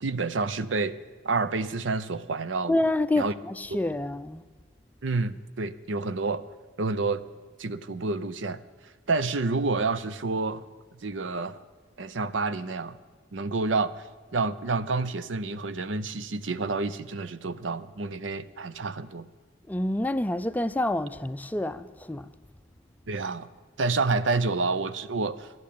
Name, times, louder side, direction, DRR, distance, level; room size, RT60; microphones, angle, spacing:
voice 1, 0.0-1.0 1.2-2.8 3.2-3.3 5.0-6.4 6.8-7.2 7.6-8.6 9.1-10.6 11.0-11.6 12.0-13.0 13.3-13.9 14.3-19.3 23.1-23.5 23.8-25.5, right 3 dB, 85° right, 0.6 m, -28 dB
voice 2, 2.7-4.4 19.7-22.3, left 1 dB, 10° left, 0.4 m, -28 dB
13.5 x 10.5 x 8.5 m
head